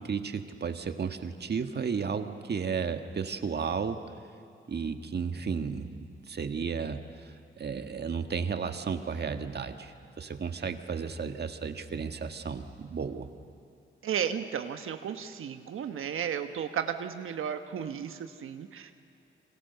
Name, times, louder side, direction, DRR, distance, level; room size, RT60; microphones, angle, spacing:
voice 1, 0.0-4.0 4.7-13.3, right 6 dB, 55° right, 7 dB, 1.6 m, -33 dB
voice 2, 14.0-18.9, right 8 dB, 85° right, 7 dB, 1.2 m, -34 dB
29.0 x 25.0 x 6.8 m, 2.7 s
cardioid pair, 90°, 21 cm